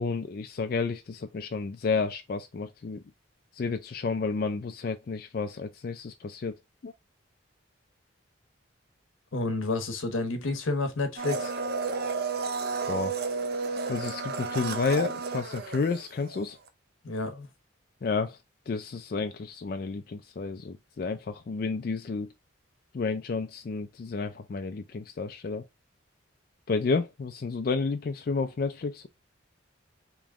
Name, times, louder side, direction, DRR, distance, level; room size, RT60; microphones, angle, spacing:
voice 1, 0.0-3.0 3.5-6.6 6.8-6.9 12.9-13.1 13.9-16.6 18.0-18.4 18.7-22.3 22.9-25.6 26.7-29.1, left 4 dB, 45° left, 0.3 m, -31 dB
voice 2, 9.3-11.5 17.0-17.5, left 3 dB, 90° left, 0.9 m, -30 dB
Domestic sounds home sounds, 11.2-16.4 16.7-16.8, right 4 dB, 50° right, 0.6 m, -32 dB
3.5 x 3.0 x 3.6 m
head